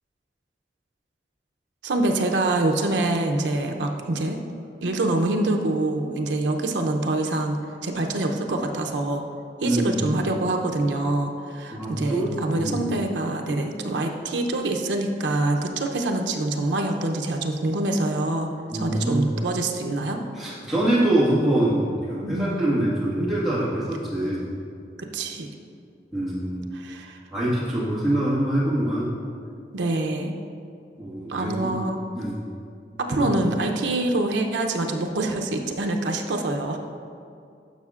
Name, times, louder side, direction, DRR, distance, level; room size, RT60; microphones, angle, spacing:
voice 1, 1.8-4.4 4.8-9.3 9.6-18.5 18.7-20.2 22.2-22.7 25.0-25.5 26.7-27.2 29.7-30.3 31.3-32.0 33.0-36.8, right 2 dB, 85° right, 2 dB, 0.6 m, -25 dB
voice 2, 9.6-10.0 11.7-12.8 18.7-19.3 20.3-24.5 26.1-26.7 27.3-29.1 31.0-31.7 32.1-32.4 33.1-33.3, right 1 dB, ahead, -9 dB, 1.5 m, -24 dB
11.5 x 5.7 x 2.4 m, 2.5 s
head